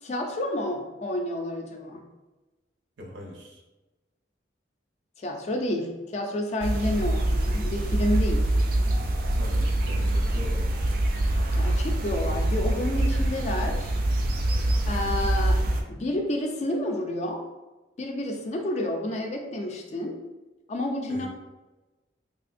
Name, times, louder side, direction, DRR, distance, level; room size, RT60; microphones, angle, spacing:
voice 1, 0.0-2.0 5.2-8.5 11.5-14.0 14.9-17.4 18.0-20.2 20.7-21.3, left 1 dB, 35° left, 3 dB, 0.3 m, -30 dB
voice 2, 3.0-3.6 9.4-10.6 21.1-21.3, equal, 70° right, 0 dB, 0.7 m, -41 dB
sound 1, 6.6-15.8, right 1 dB, 50° right, 0.3 m, -25 dB
3.4 x 2.5 x 2.5 m, 1.1 s
head